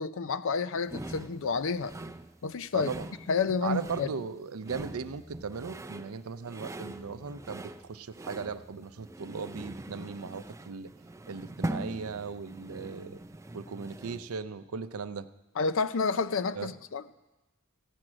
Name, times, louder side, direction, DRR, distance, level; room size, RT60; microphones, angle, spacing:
voice 1, 0.0-1.9 2.4-2.9 3.3-4.1 15.6-17.0, left 5 dB, 65° left, 13 dB, 0.5 m, -29 dB
sound 1, 0.9-14.3, right 1 dB, 15° right, 0.4 m, -42 dB
voice 2, 2.7-3.1 3.6-10.9 11.3-13.2 13.5-15.3 16.5-16.7, right 5 dB, 85° right, 12 dB, 0.6 m, -37 dB
14.5 x 6.2 x 8.8 m, 1.0 s
head